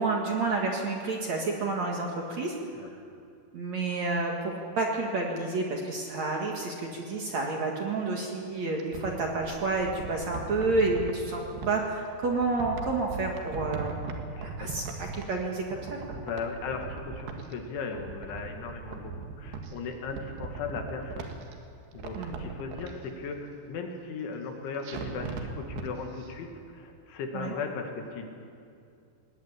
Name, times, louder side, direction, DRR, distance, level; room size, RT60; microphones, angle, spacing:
voice 1, 0.0-2.5 3.5-13.9 14.4-15.6 15.9-16.2 22.2-22.4 27.3-27.5, right 3 dB, 50° right, 0 dB, 2.4 m, -30 dB
sound 1, 8.6-11.7 12.2-15.4 15.7-17.5 17.8-19.7 20.0-21.5 21.9-22.9 24.8-25.9 26.2-26.3, right 5 dB, 70° right, 3.6 m, -39 dB
voice 2, 14.3-14.7 16.2-21.3 21.9-28.3, left 5 dB, 85° left, 3 dB, 4.5 m, -37 dB
20.0 x 17.0 x 9.9 m, 2.5 s
omnidirectional pair, 5.2 m